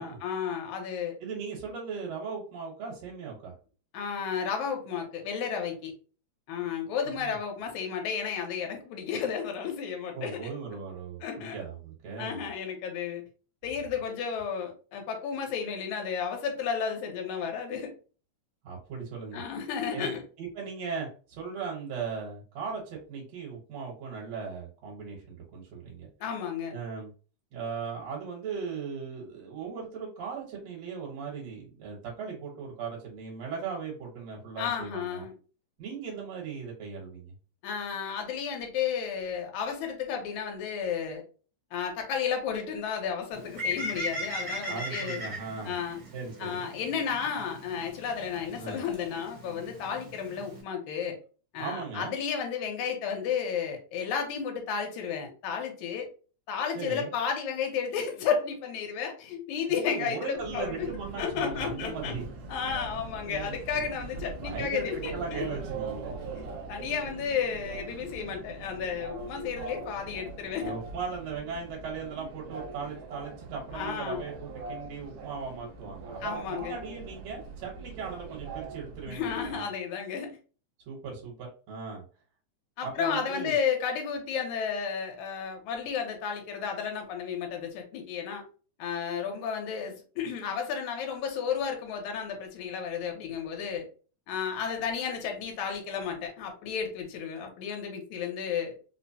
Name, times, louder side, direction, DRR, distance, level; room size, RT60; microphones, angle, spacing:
voice 1, 0.0-1.2 3.9-5.9 6.5-10.4 11.2-11.6 12.2-13.2 13.6-17.9 19.3-20.2 26.2-26.8 34.6-35.3 37.6-41.2 41.7-45.2 45.6-46.0 46.4-51.2 51.5-56.1 56.5-60.9 61.2-62.2 62.5-65.5 66.7-70.7 73.7-74.2 76.2-76.8 79.1-80.4 82.8-88.4 88.8-93.9 94.3-98.8, left 7 dB, 80° left, 3 dB, 2.2 m, -32 dB
voice 2, 1.2-3.5 7.2-7.4 10.1-12.4 18.6-19.4 19.9-26.1 26.7-27.1 27.5-35.2 35.8-37.3 44.6-45.7 46.1-46.7 48.6-48.8 51.6-52.2 56.7-57.1 59.7-62.2 63.2-63.8 64.4-66.2 70.6-79.7 80.9-82.0 82.8-83.5, right 5 dB, 65° right, -3 dB, 2.2 m, -38 dB
Bird, 43.3-50.6, left 1 dB, 45° right, 1.3 m, -38 dB
Subway metro underground, 60.3-79.6, right 3 dB, 85° right, 1.3 m, -41 dB
4.9 x 2.1 x 2.7 m, 0.37 s
omnidirectional pair, 3.4 m